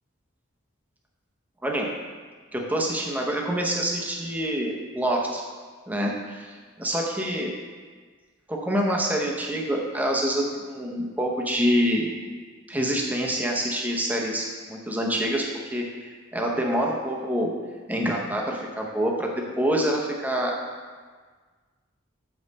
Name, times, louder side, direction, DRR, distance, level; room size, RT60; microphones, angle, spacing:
voice 1, 2.5-5.4 5.9-7.5 8.5-12.1 12.7-15.4 15.7-17.5 17.9-20.6, equal, 10° right, -1 dB, 0.8 m, -26 dB
7.7 x 5.3 x 4.1 m, 1.5 s
head